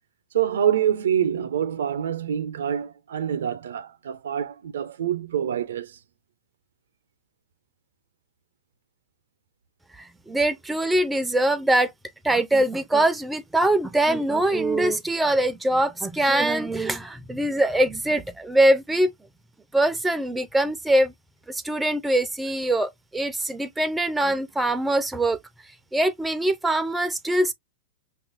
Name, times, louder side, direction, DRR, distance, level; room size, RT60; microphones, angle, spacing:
voice 1, 0.3-6.0, right 9 dB, 80° right, 0.5 m, -26 dB
voice 2, 10.0-11.9 12.2-19.1 19.7-21.1 21.5-25.4 25.9-27.5, right 1 dB, 5° right, 0.3 m, -23 dB
5.3 x 2.4 x 2.4 m
hypercardioid pair, 115°, 0 cm